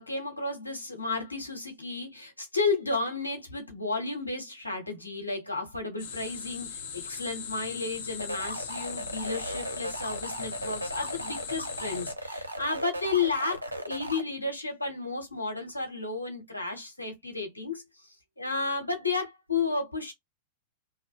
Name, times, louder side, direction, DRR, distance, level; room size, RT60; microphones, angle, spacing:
voice 1, 0.0-20.1, left 3 dB, 85° left, 0.9 m, -32 dB
sound 1, 6.0-12.1, left 7 dB, 55° left, 0.6 m, -40 dB
sound 2, 8.2-14.2, right 1 dB, 85° right, 0.5 m, -37 dB
2.4 x 2.0 x 3.4 m
figure-of-eight pair, 95°, 0 cm